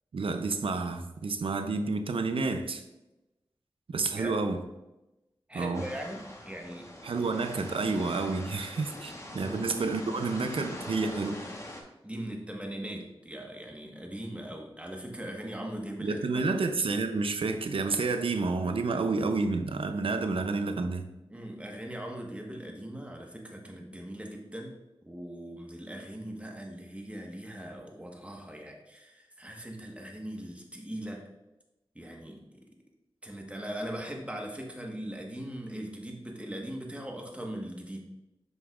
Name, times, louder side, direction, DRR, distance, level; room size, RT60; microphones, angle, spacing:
voice 1, 0.1-2.8 3.9-4.6 5.5-5.9 7.0-11.4 16.0-21.1, right 3 dB, 80° right, 8 dB, 0.6 m, -30 dB
voice 2, 4.0-4.3 5.5-6.9 9.3-9.6 12.0-16.4 21.3-24.7 25.0-31.3 31.9-32.6 33.2-38.0, right 1 dB, 15° right, 0 dB, 1.3 m, -40 dB
sound 1, 5.7-11.8, left 1 dB, 35° left, 1.2 m, -43 dB
7.9 x 5.3 x 2.4 m, 0.98 s
cardioid pair, 50°, 9 cm